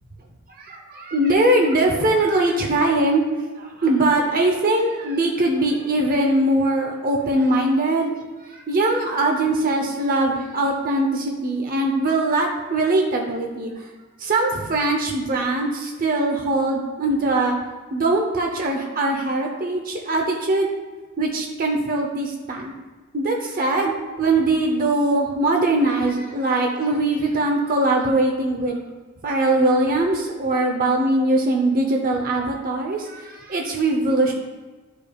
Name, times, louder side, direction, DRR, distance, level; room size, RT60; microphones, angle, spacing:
voice 1, 0.6-3.2 3.6-8.2 8.4-13.8 14.2-17.6 17.9-20.7 21.2-22.7 23.1-23.9 24.2-28.8 29.2-34.3, right 2 dB, 40° right, 1 dB, 0.7 m, -21 dB
11.5 x 5.1 x 2.3 m, 1.3 s
head